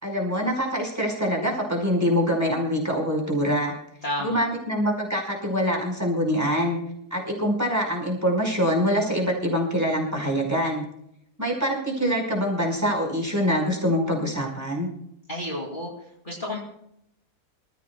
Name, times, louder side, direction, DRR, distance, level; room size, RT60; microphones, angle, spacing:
voice 1, 0.0-3.7 4.2-6.8 7.1-10.8 11.4-14.9, equal, 10° right, -1 dB, 5.1 m, -24 dB
voice 2, 4.0-4.4 15.3-15.9 16.2-16.6, left 1 dB, 30° left, -3 dB, 3.0 m, -30 dB
27.0 x 14.5 x 2.4 m, 0.74 s
omnidirectional pair, 1.7 m